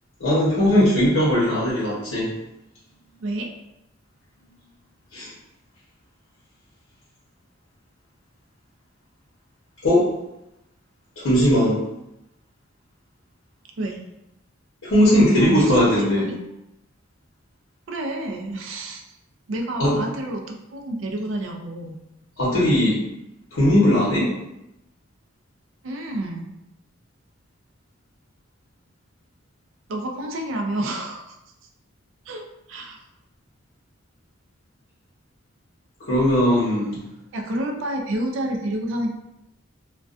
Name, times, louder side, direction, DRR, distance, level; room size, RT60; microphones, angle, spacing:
voice 1, 0.2-2.3 5.1-5.3 9.8-10.1 11.2-11.8 14.8-16.2 19.8-20.0 22.4-23.0 23.5-24.3 36.0-37.0, equal, 75° left, -8 dB, 0.8 m, -18 dB
voice 2, 15.4-16.4 17.9-19.0 19.5-22.0 25.8-26.6 29.9-31.4 32.3-32.4 32.7-33.0 37.3-39.1, right 1 dB, 65° right, 2 dB, 0.4 m, -29 dB
2.3 x 2.2 x 2.4 m, 0.88 s
head